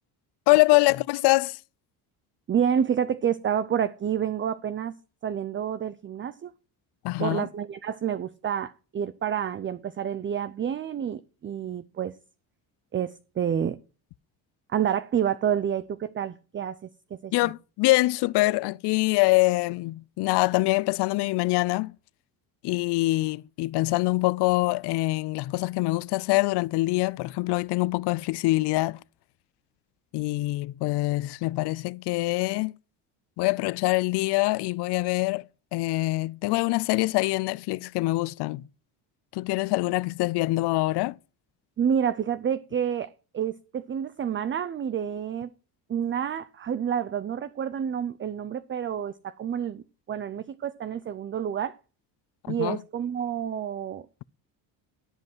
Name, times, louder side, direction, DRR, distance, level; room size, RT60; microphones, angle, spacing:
voice 1, 0.5-1.6 7.0-7.4 17.3-21.9 22.6-29.0 30.1-32.7 33.4-35.4 35.7-38.6 39.3-41.2 52.5-52.8, left 21 dB, 65° left, 0.5 m, -24 dB
voice 2, 2.5-4.9 5.2-6.5 7.2-12.1 12.9-13.8 14.7-17.5 41.8-45.5 45.9-51.8 52.5-54.1, right 8 dB, 25° right, 0.5 m, -29 dB
16.0 x 5.3 x 6.1 m
cardioid pair, 100°, 44 cm